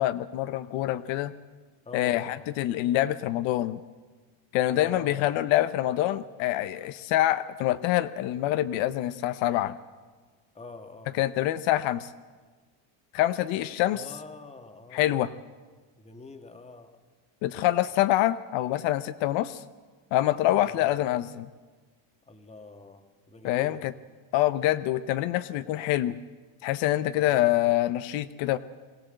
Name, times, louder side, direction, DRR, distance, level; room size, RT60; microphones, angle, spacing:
voice 1, 0.0-1.3 1.9-3.8 4.5-9.8 11.2-12.1 13.1-14.0 14.9-15.3 17.4-19.6 20.1-21.5 23.4-23.9 24.3-26.2 26.6-28.6, left 14 dB, 75° left, 12 dB, 0.8 m, -26 dB
voice 2, 1.8-2.5 4.7-5.4 10.5-11.2 13.9-15.4 16.0-17.0 20.6-21.0 22.2-23.8 27.1-27.5, left 3 dB, 15° left, 6 dB, 1.5 m, -45 dB
22.5 x 15.5 x 7.7 m, 1.4 s
cardioid pair, 135°, 47 cm